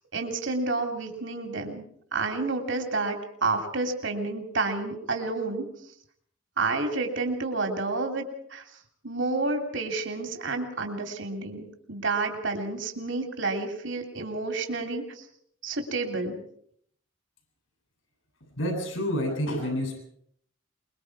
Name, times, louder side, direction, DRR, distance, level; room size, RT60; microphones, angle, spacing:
voice 1, 0.1-1.8 2.1-5.7 6.6-8.2 8.5-8.6 9.0-15.2 15.6-16.4, right 3 dB, 65° right, 3 dB, 2.9 m, -30 dB
voice 2, 18.6-20.0, equal, 80° left, 3 dB, 7.8 m, -28 dB
24.0 x 22.5 x 4.8 m, 0.67 s
head